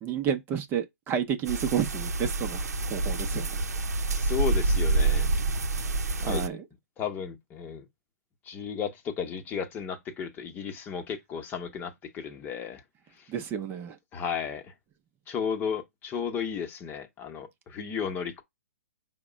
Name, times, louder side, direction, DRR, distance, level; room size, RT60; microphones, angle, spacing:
voice 1, 0.0-3.6 6.2-6.7 13.3-14.0, right 8 dB, 25° right, 0.6 m, -31 dB
sound 1, 1.5-6.5, right 3 dB, 80° right, 0.6 m, -27 dB
voice 2, 4.2-5.3 6.2-6.4 7.0-7.9 8.4-12.8 14.1-14.7 15.3-18.4, left 7 dB, 20° left, 0.9 m, -34 dB
5.1 x 2.1 x 4.9 m
hypercardioid pair, 130°, 9 cm